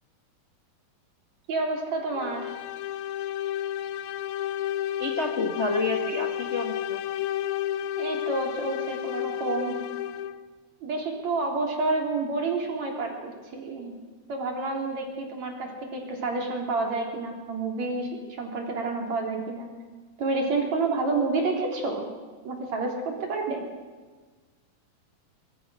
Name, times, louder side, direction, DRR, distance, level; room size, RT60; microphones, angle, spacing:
voice 1, 1.5-2.5 8.0-9.8 10.8-14.0 14.3-18.1 18.4-19.7 20.2-22.1 22.4-23.7, right 3 dB, 50° right, 1 dB, 4.7 m, -29 dB
sound 1, 2.1-10.5, left 11 dB, 90° left, 2.7 m, -31 dB
voice 2, 5.0-7.0, left 2 dB, 55° left, 4 dB, 0.7 m, -29 dB
25.0 x 22.5 x 6.4 m, 1.4 s
omnidirectional pair, 4.1 m